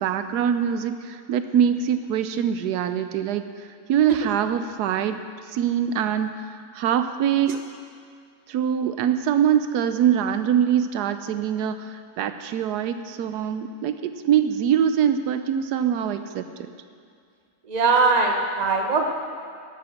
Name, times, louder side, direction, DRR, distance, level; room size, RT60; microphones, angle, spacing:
voice 1, 0.0-3.4 3.9-5.2 5.5-6.4 6.7-7.6 8.5-16.4, right 9 dB, 85° right, 10 dB, 1.2 m, -23 dB
voice 2, 17.7-19.1, right 4 dB, 30° right, 3 dB, 1.0 m, -21 dB
12.0 x 9.1 x 6.5 m, 2.3 s
omnidirectional pair, 1.7 m